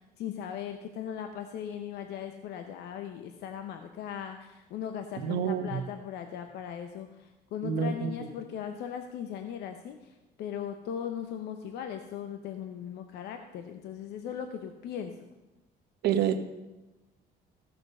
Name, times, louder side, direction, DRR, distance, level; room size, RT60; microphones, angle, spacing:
voice 1, 0.0-15.2, left 8 dB, 80° left, 7 dB, 0.8 m, -38 dB
voice 2, 5.2-5.8 7.6-8.1 16.0-16.4, right 8 dB, 75° right, 8 dB, 1.1 m, -27 dB
14.5 x 6.9 x 5.5 m, 1.0 s
cardioid pair, 110°, 17 cm